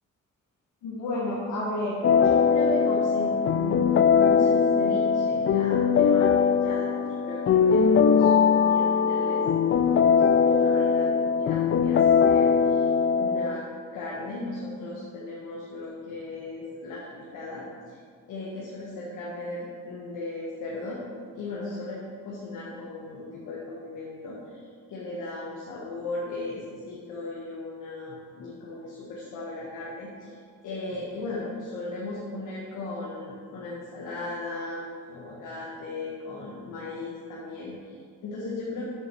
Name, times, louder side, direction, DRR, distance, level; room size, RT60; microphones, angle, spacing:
voice 1, 0.8-9.4 9.9-12.9 13.2-13.6 13.9-18.0 18.3-21.0 21.3-38.8, left 2 dB, 85° left, -6 dB, 1.7 m, -36 dB
sound 1, 2.0-13.6, left 6 dB, 45° left, 0.4 m, -21 dB
7.5 x 6.2 x 6.1 m, 2.1 s
cardioid pair, 90°, 30 cm